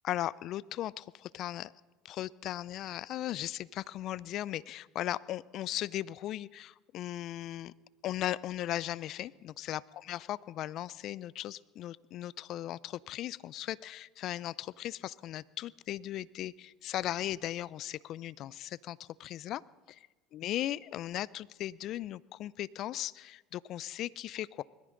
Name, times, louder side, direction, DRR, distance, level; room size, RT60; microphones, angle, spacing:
voice 1, 0.0-1.7 2.0-7.7 8.0-19.6 19.9-24.6, left 13 dB, 55° left, 22 dB, 0.4 m, -37 dB
21.0 x 14.0 x 3.8 m, 1.2 s
hypercardioid pair, 80°, 0 cm